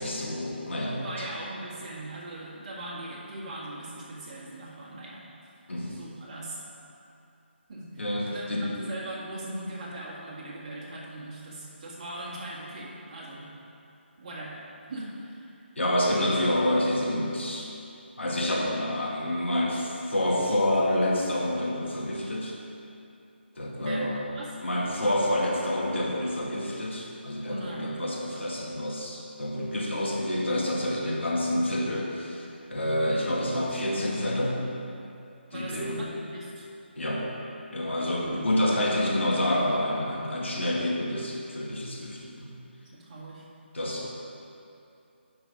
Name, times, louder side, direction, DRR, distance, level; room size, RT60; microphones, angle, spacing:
voice 1, 0.0-1.3 5.7-6.0 8.0-8.7 15.8-17.7 18.2-22.6 23.6-24.2 24.6-34.6 35.5-36.0 37.0-37.3 37.7-42.5 43.7-44.1, left 1 dB, 80° left, -3 dB, 1.8 m, -28 dB
voice 2, 1.0-5.3 6.0-6.6 7.7-7.9 8.3-8.5 8.8-13.5 14.2-14.6 14.9-15.6 23.8-24.0 24.3-24.5 27.4-28.0 35.5-36.7 38.0-38.5 42.9-43.4, right 1 dB, 35° right, -6 dB, 1.8 m, -40 dB
7.8 x 5.9 x 5.3 m, 2.7 s
figure-of-eight pair, 160°, 6 cm